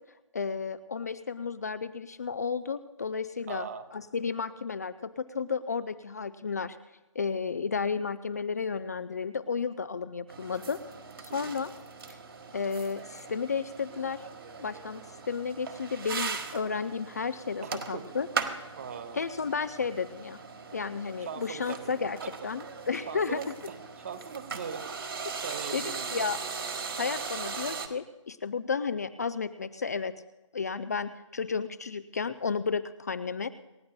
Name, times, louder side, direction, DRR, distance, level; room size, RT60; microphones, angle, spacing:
voice 1, 0.3-3.7 3.9-6.8 7.2-10.8 11.2-11.7 12.1-12.2 12.5-14.2 14.6-15.0 15.3-18.3 19.1-20.4 20.7-22.2 22.4-23.4 25.7-26.4 27.0-30.1 30.5-33.5, left 5 dB, 30° left, 13 dB, 0.4 m, -32 dB
voice 2, 3.5-3.9 11.3-11.5 17.6-18.1 18.7-19.2 21.2-21.9 22.2-22.3 23.1-24.9 25.4-26.3, right 7 dB, 30° right, 12 dB, 1.0 m, -40 dB
sound 1, 10.3-27.9, right 5 dB, 45° right, 1.6 m, -39 dB
28.0 x 14.0 x 2.2 m, 1.0 s
figure-of-eight pair, 150°, 16 cm